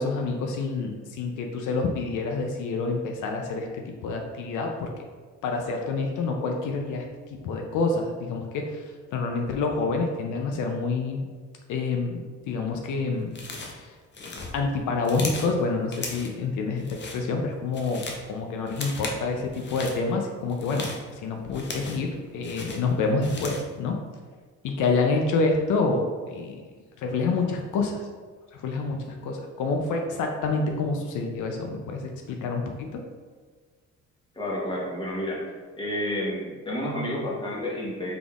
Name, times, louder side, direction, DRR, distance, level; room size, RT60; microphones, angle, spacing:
voice 1, 0.0-4.9 5.4-8.8 9.1-11.2 11.7-13.3 13.6-13.9 14.5-20.9 21.2-24.0 24.6-26.6 27.0-28.0 28.5-33.0, left 3 dB, 80° left, 3 dB, 0.5 m, -27 dB
sound 1, 13.3-13.8 14.1-15.5 15.9-16.4 16.8-17.2 17.6-18.3 18.7-19.2 19.5-20.0 20.5-22.1 22.4-23.7, left 3 dB, 35° left, 0.6 m, -37 dB
voice 2, 34.3-35.4 35.8-38.2, left 1 dB, 15° left, -4 dB, 1.0 m, -30 dB
3.8 x 3.5 x 2.3 m, 1.5 s
cardioid pair, 90°, 30 cm